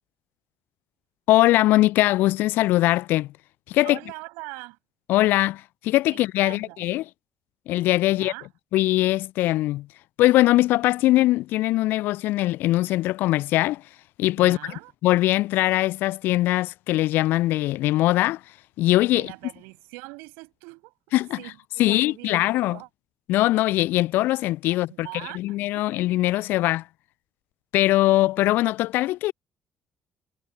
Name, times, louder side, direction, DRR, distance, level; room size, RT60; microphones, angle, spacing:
voice 1, 1.3-3.3 3.7-4.0 5.1-7.0 7.7-8.3 8.7-9.9 10.2-13.8 14.2-14.6 15.0-18.4 18.8-19.3 21.1-21.4 21.8-22.8 23.3-25.1 25.3-26.8 27.7-29.3, left 17 dB, 60° left, 0.4 m, -21 dB
voice 2, 3.8-4.8 6.1-6.8 8.1-8.5 14.4-14.9 19.1-22.3 22.7-22.9 24.7-26.0, right 28 dB, 70° right, 6.1 m, -42 dB
figure-of-eight pair, 45°, 4 cm